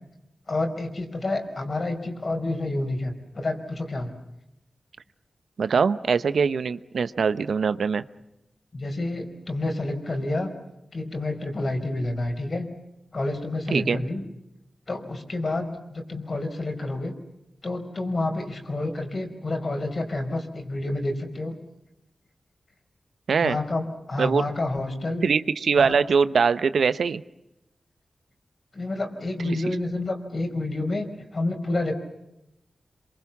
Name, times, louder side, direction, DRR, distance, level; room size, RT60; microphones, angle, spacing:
voice 1, 0.5-4.1 8.7-10.5 10.9-12.7 13.1-14.2 14.9-17.1 17.6-21.5 23.4-25.2 25.7-25.9 28.7-31.1 31.3-31.9, left 2 dB, 50° left, 5 dB, 5.1 m, -29 dB
voice 2, 5.6-8.0 13.7-14.0 23.3-23.6 24.2-24.4 25.2-27.2 29.4-29.6, right 5 dB, 85° right, 13 dB, 0.9 m, -22 dB
27.0 x 24.0 x 7.3 m, 0.87 s
wide cardioid pair, 75°, 0 cm